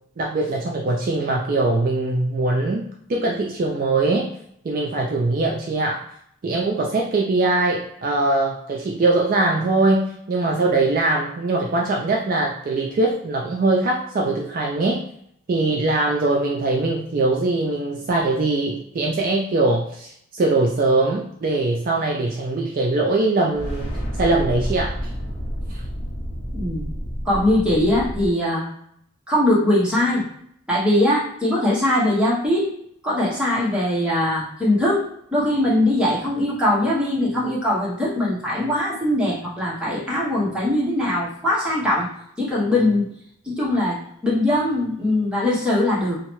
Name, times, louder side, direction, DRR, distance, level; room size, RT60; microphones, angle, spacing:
voice 1, 0.2-2.8 3.1-4.3 4.6-6.0 6.4-15.0 15.5-23.9 24.2-24.9 25.7-25.8, right 2 dB, 40° right, -1 dB, 0.3 m, -21 dB
sound 1, 23.5-28.3, equal, 50° left, 0.7 m, -29 dB
voice 2, 26.5-26.8 27.2-28.7 29.3-30.3 30.7-32.7 33.0-35.0 35.3-42.1 42.4-43.1 43.5-46.2, left 1 dB, 5° right, -7 dB, 0.8 m, -21 dB
2.7 x 2.1 x 3.0 m, 0.71 s
head